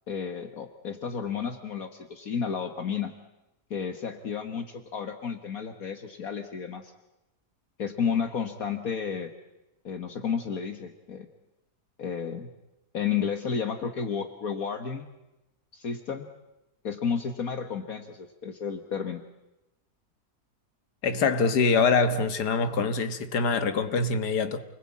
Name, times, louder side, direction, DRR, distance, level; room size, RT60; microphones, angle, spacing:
voice 1, 0.1-3.1 3.7-6.9 7.8-9.3 9.8-11.3 12.0-12.5 12.9-15.1 15.7-16.3 16.8-19.2, left 6 dB, 60° left, 1.8 m, -32 dB
voice 2, 21.0-24.6, left 4 dB, 85° left, 2.0 m, -24 dB
29.0 x 20.5 x 8.5 m
omnidirectional pair, 1.7 m